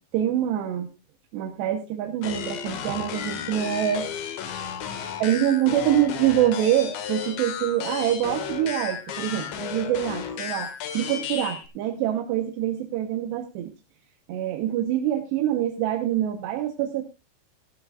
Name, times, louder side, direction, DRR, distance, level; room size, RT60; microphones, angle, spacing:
voice 1, 0.1-0.9 1.3-4.1 5.2-10.7 10.9-13.7 14.3-17.0, right 11 dB, 75° right, 4 dB, 3.0 m, -25 dB
sound 1, 2.2-11.7, left 8 dB, 75° left, 3.9 m, -33 dB
15.5 x 15.0 x 2.4 m, 0.27 s
omnidirectional pair, 5.4 m